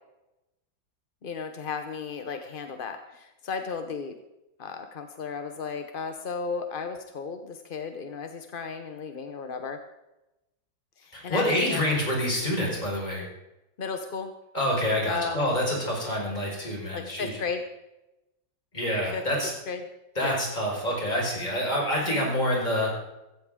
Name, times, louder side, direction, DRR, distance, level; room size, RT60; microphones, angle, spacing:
voice 1, 1.2-4.2 4.6-9.8 11.0-11.8 13.8-14.3 15.1-15.5 16.9-17.6 19.1-19.2 19.7-19.8 20.2-20.4 22.1-22.3, left 5 dB, 45° left, 7 dB, 0.7 m, -34 dB
voice 2, 11.1-13.3 14.5-17.4 18.7-19.5 20.2-22.9, equal, 20° left, -3 dB, 5.2 m, -27 dB
15.5 x 14.5 x 3.7 m, 0.95 s
omnidirectional pair, 2.0 m